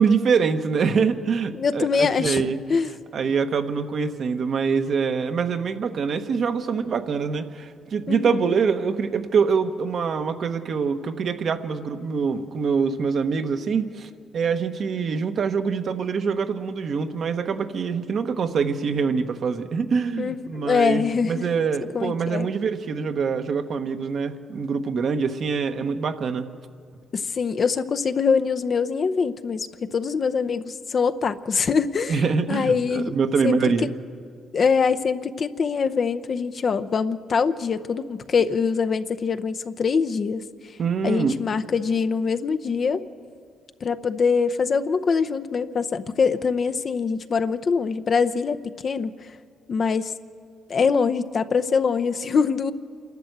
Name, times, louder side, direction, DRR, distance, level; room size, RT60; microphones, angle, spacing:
voice 1, 0.0-2.8 3.1-26.5 32.1-33.9 40.8-41.4, right 5 dB, 55° right, 7 dB, 1.2 m, -24 dB
voice 2, 1.5-2.4 2.7-3.0 8.1-8.5 20.2-21.5 21.9-22.5 27.1-32.2 32.5-33.1 33.4-33.6 34.5-40.4 41.0-43.1 43.8-48.6 48.8-49.2 49.7-50.1 50.7-52.7, left 5 dB, 45° left, 9 dB, 0.7 m, -23 dB
27.0 x 12.0 x 8.0 m, 2.2 s
cardioid pair, 90°, 0 cm